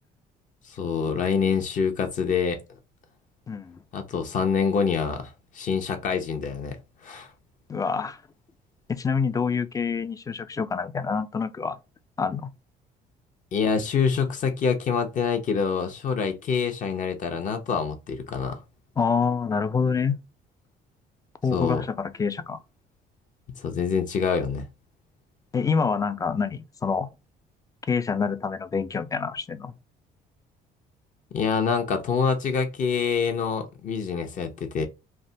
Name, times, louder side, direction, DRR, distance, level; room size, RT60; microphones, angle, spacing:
voice 1, 0.6-2.6 3.9-7.3 13.5-18.6 21.5-21.8 23.6-24.7 31.3-34.9, left 6 dB, 50° left, 0.7 m, -26 dB
voice 2, 3.5-3.8 7.7-8.2 8.9-11.8 12.2-12.5 19.0-20.2 21.4-22.6 25.5-27.1 27.9-29.7, left 5 dB, 20° left, 0.4 m, -26 dB
3.3 x 2.1 x 2.6 m
cardioid pair, 110°, 17 cm